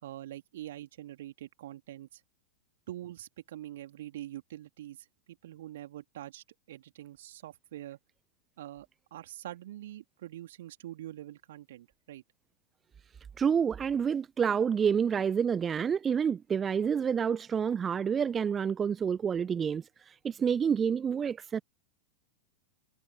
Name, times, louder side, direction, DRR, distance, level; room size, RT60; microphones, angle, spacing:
voice 1, 0.0-2.2 2.9-5.0 5.4-8.0 8.6-8.9 9.1-12.2, right 13 dB, 55° right, 3.2 m, -44 dB
voice 2, 13.4-21.6, right 7 dB, 20° right, 1.0 m, -28 dB
figure-of-eight pair, 90°, 0 cm